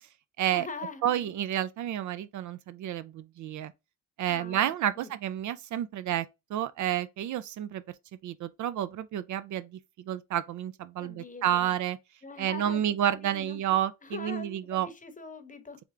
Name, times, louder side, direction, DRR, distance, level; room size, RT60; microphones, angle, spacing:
voice 1, 0.5-1.4 4.3-5.1 11.0-11.7 12.2-12.8 13.1-13.7 14.0-15.8, left 4 dB, 25° left, 0.9 m, -43 dB
voice 2, 1.0-3.7 4.2-6.3 6.5-7.8 8.2-9.7 10.1-12.0 12.4-14.9, right 11 dB, 60° right, 0.4 m, -30 dB
3.5 x 3.3 x 3.6 m
cardioid pair, 95°, 34 cm